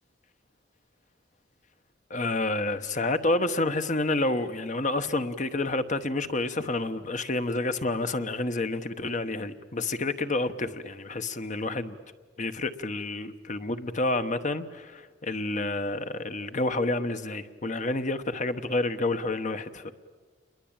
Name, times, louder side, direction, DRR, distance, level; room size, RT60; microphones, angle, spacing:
voice 1, 2.1-12.0 12.4-19.9, left 2 dB, 40° left, 1.1 m, -29 dB
29.0 x 22.5 x 8.9 m
head